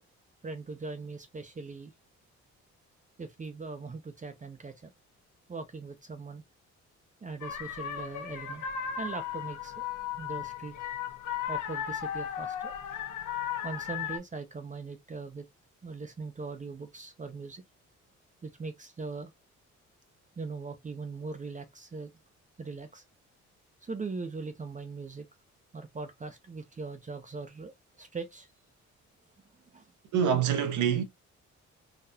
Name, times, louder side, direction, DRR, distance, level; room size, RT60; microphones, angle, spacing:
voice 1, 0.4-1.9 3.2-4.9 5.5-6.4 7.2-8.6 9.0-9.9 10.2-10.7 11.5-12.7 13.6-15.4 15.8-17.6 18.4-19.3 20.4-22.1 22.6-23.0 23.8-25.3 25.7-28.5 29.7-29.9, right 4 dB, 25° right, 0.7 m, -40 dB
sound 1, 7.4-14.2, left 9 dB, 80° left, 1.0 m, -36 dB
voice 2, 30.1-31.0, right 8 dB, 85° right, 1.1 m, -25 dB
4.0 x 2.6 x 2.7 m
cardioid pair, 90°, 30 cm